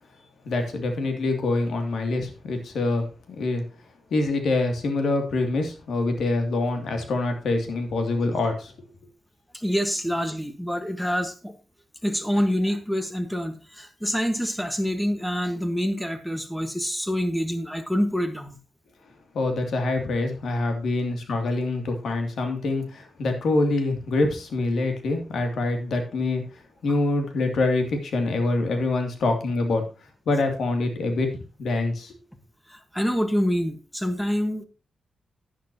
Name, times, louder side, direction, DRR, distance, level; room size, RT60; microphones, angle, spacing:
voice 1, 0.4-3.1 3.4-3.6 4.1-8.7 19.3-29.8 30.3-31.3 31.6-32.1, left 2 dB, 75° left, 5 dB, 2.5 m, -25 dB
voice 2, 9.5-11.6 12.0-18.6 32.7-34.7, equal, 5° left, 8 dB, 1.4 m, -26 dB
11.5 x 10.5 x 2.8 m, 0.33 s
wide cardioid pair, 145°, 0 cm